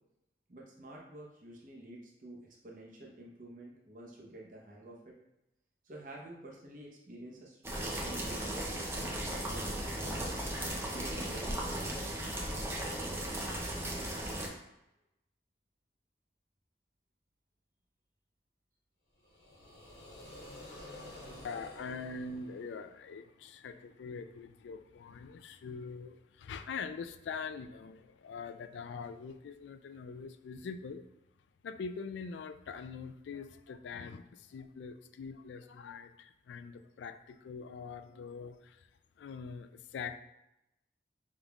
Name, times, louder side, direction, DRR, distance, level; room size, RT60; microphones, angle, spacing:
voice 1, 0.5-5.2 5.8-10.4 10.9-12.1 20.1-20.4 20.8-21.0, right 1 dB, 45° right, -2 dB, 0.9 m, -49 dB
sound 1, 7.6-14.5, right 1 dB, 15° right, 0.6 m, -36 dB
sound 2, 19.2-23.2, left 1 dB, 55° left, 1.2 m, -50 dB
voice 2, 21.4-31.0 31.6-38.9 39.2-40.2, left 5 dB, 80° left, 10 dB, 0.3 m, -43 dB
5.3 x 3.7 x 2.3 m, 0.89 s
head